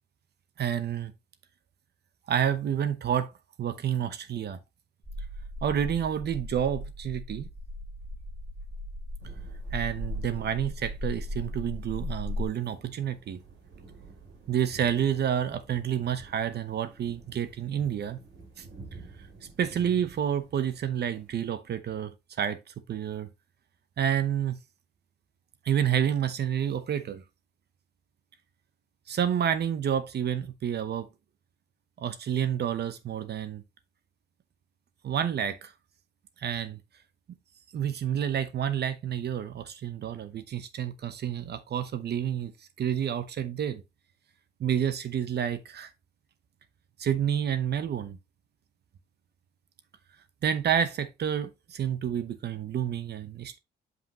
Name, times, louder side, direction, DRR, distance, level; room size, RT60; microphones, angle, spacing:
voice 1, 0.6-1.1 2.3-3.3 3.6-4.6 5.6-7.5 9.7-13.4 14.5-18.2 18.6-18.7 19.6-22.1 22.4-23.3 24.0-24.6 25.6-27.2 29.1-31.1 32.0-33.6 35.0-35.7 36.4-36.8 37.7-42.5 42.8-43.8 44.6-45.9 47.0-48.2 50.4-53.6, right 9 dB, 55° right, 0.8 m, -29 dB
sound 1, 5.0-12.5, left 1 dB, 10° right, 1.6 m, -37 dB
sound 2, 9.2-21.4, right 3 dB, 70° right, 3.0 m, -51 dB
7.7 x 5.5 x 2.9 m
cardioid pair, 90°, 20 cm